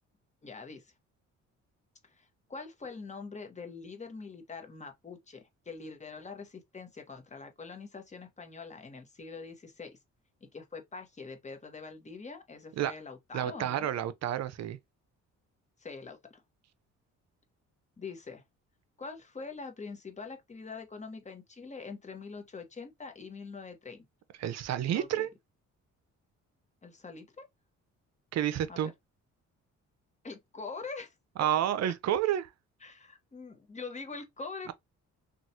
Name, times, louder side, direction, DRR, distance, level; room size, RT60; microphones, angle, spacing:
voice 1, 0.4-0.8 2.0-10.0 10.4-13.9 15.8-16.4 18.0-18.4 19.0-24.1 24.9-25.3 26.8-27.5 28.7-28.9 30.2-31.1 31.4-31.5 31.8-31.9 32.8-34.7, left 4 dB, 25° left, 0.9 m, -44 dB
voice 2, 13.3-14.8 24.4-25.3 28.3-28.9 31.4-32.5, right 11 dB, 60° right, 0.5 m, -30 dB
3.0 x 2.4 x 2.7 m
cardioid pair, 90°, 30 cm